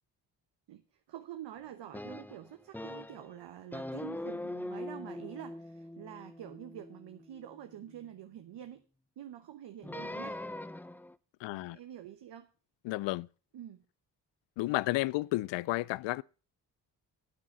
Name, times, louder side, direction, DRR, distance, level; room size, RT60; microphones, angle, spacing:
voice 1, 0.7-8.8 9.2-10.5 11.5-12.5 13.5-13.8, right 11 dB, 65° right, 1.0 m, -47 dB
sound 1, 1.9-3.3 3.7-8.0 9.8-11.2, left 1 dB, 5° left, 0.5 m, -42 dB
voice 2, 11.4-11.8 12.8-13.3 14.6-16.2, left 19 dB, 70° left, 0.5 m, -32 dB
9.6 x 8.6 x 5.3 m
supercardioid pair, 50°, 45 cm